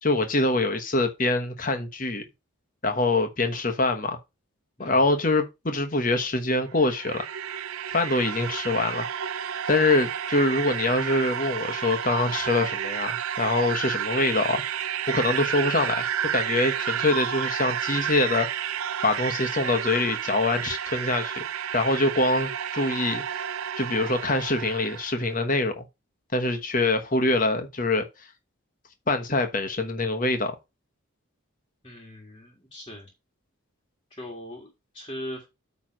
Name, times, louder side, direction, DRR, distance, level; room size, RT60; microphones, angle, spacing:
voice 1, 0.0-2.2 2.8-4.2 4.8-7.2 7.9-9.1 9.7-14.6 15.1-16.1 16.3-18.5 19.0-21.4 21.7-23.4 23.8-25.8 26.3-28.1 29.1-30.6, left 2 dB, 40° left, 1.2 m, -24 dB
sound 1, 6.6-25.3, right 9 dB, 85° right, 0.5 m, -31 dB
voice 2, 31.8-33.1 34.2-35.5, equal, 25° left, 1.7 m, -40 dB
8.9 x 3.4 x 6.2 m
head